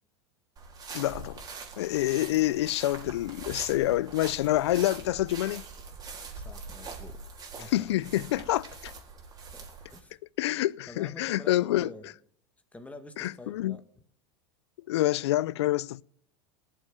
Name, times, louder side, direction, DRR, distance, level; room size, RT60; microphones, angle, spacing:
sound 1, 0.6-10.0, right 4 dB, 25° right, 3.9 m, -43 dB
voice 1, 0.9-1.4 1.8-5.6 7.7-8.9 10.4-11.9 13.2-13.8 14.9-16.0, left 15 dB, 80° left, 0.5 m, -27 dB
voice 2, 2.3-2.6 5.0-5.3 6.3-8.0 9.5-10.2 10.9-12.1 12.7-13.8, left 2 dB, 10° left, 2.1 m, -48 dB
19.0 x 7.5 x 6.3 m
hypercardioid pair, 105°, 14 cm